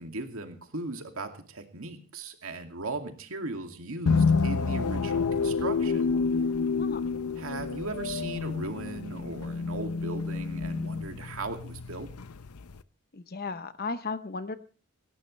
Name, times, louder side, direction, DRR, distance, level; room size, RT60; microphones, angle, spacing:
voice 1, 0.0-6.1 7.4-12.1, right 2 dB, 65° right, 5 dB, 2.4 m, -37 dB
sound 1, 4.1-12.8, left 4 dB, 75° left, 0.7 m, -29 dB
voice 2, 13.1-14.6, left 4 dB, 45° left, 12 dB, 0.8 m, -35 dB
18.5 x 17.0 x 3.3 m, 0.40 s
head